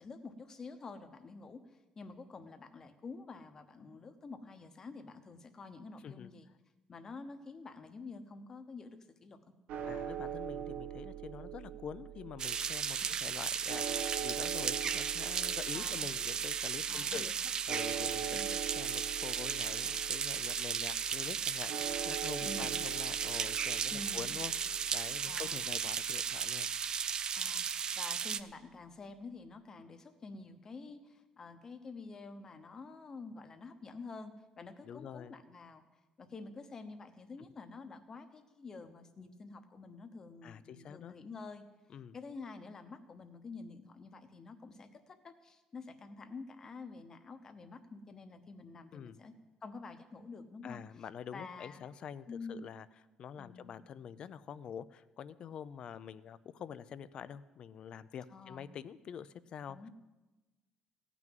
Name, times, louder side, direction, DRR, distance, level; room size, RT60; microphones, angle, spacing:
voice 1, 0.0-6.5 6.9-9.4 13.0-13.2 15.7-16.1 16.9-17.3 18.3-18.6 22.4-22.8 23.4-23.5 23.9-24.4 25.3-25.7 27.3-35.8 36.2-41.6 42.1-49.3 49.6-50.8 51.3-51.9 52.3-52.7 53.4-53.8 58.3-58.7 59.7-59.9, left 4 dB, 25° left, 9 dB, 0.9 m, -48 dB
sound 1, 9.7-27.9, right 9 dB, 80° right, 1.1 m, -44 dB
voice 2, 9.8-18.4 18.8-24.5 24.9-26.7 34.8-35.3 40.4-41.1 41.9-42.2 48.9-49.2 50.6-52.9 53.2-59.9, left 8 dB, 40° left, 15 dB, 0.4 m, -46 dB
sound 2, 12.4-28.4, right 7 dB, 35° right, 0.4 m, -35 dB
16.0 x 6.1 x 9.1 m, 1.1 s
cardioid pair, 165°, 2 cm